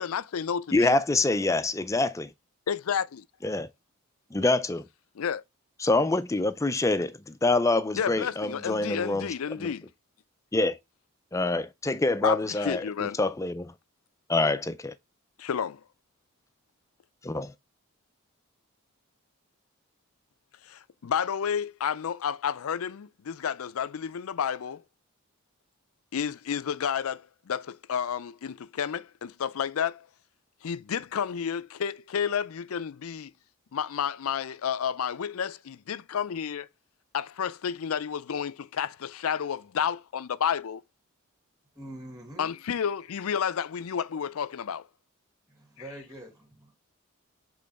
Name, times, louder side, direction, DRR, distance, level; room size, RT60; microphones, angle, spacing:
voice 1, 0.0-0.9 2.7-3.2 5.2-5.4 7.9-9.9 12.2-13.2 15.4-15.8 20.7-24.8 26.1-30.1 30.6-33.3 33.7-36.7 37.1-40.8 42.4-44.8, left 7 dB, 80° left, 0.4 m, -31 dB
voice 2, 0.7-2.3 3.4-3.7 4.3-4.8 5.8-9.7 10.5-10.8 11.3-13.7 14.3-14.9 17.2-17.5, left 2 dB, 15° left, 0.4 m, -26 dB
voice 3, 41.8-42.5 45.5-46.7, right 1 dB, 15° right, 2.1 m, -44 dB
7.6 x 3.8 x 3.4 m
head